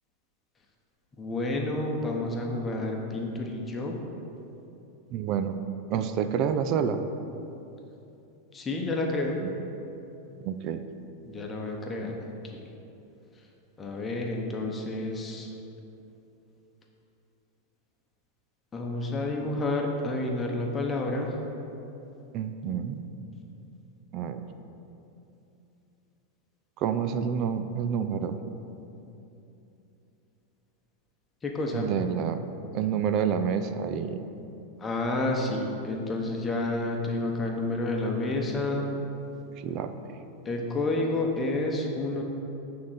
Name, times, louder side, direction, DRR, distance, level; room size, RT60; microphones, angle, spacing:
voice 1, 1.2-4.0 8.5-9.4 11.2-12.2 12.5-12.6 13.8-15.5 18.7-21.4 31.4-31.9 34.8-38.9 40.4-42.2, left 2 dB, 20° left, 0 dB, 1.0 m, -30 dB
voice 2, 5.1-5.6 5.9-7.0 9.4-9.5 10.4-10.8 22.3-23.0 24.1-24.4 26.8-28.4 31.7-32.5 32.7-34.2 39.6-39.9, right 7 dB, 45° right, 9 dB, 0.4 m, -28 dB
8.6 x 3.8 x 5.7 m, 2.9 s
hypercardioid pair, 120°, 0 cm